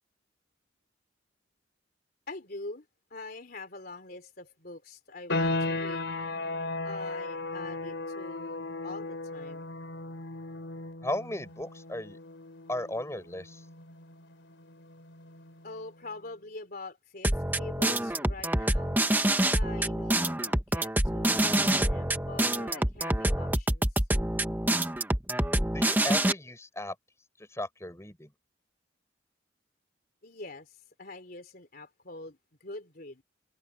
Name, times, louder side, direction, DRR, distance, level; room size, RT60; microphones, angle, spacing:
voice 1, 2.3-2.9 3.1-6.0 6.8-9.7 15.6-19.0 19.5-24.0 30.2-33.2, left 2 dB, 50° left, 3.5 m, -44 dB
sound 1, 5.3-15.8, left 2 dB, 70° left, 3.6 m, -36 dB
voice 2, 11.0-12.2 12.7-13.6 25.7-26.9 27.4-28.3, left 1 dB, 15° left, 6.2 m, -35 dB
sound 2, 17.2-26.3, right 1 dB, 10° right, 1.2 m, -26 dB
head